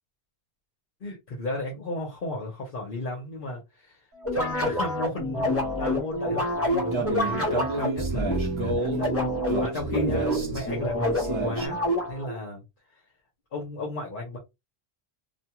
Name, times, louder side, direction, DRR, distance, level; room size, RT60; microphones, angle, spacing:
voice 1, 1.0-4.0 4.3-8.2 8.6-9.3 9.6-11.8 12.1-12.6 13.5-14.4, left 2 dB, 55° left, 1.0 m, -35 dB
sound 1, 4.2-12.4, left 1 dB, 15° left, 1.0 m, -27 dB
sound 2, 6.7-11.7, right 2 dB, 30° right, 0.8 m, -31 dB
2.5 x 2.3 x 2.9 m
omnidirectional pair, 1.0 m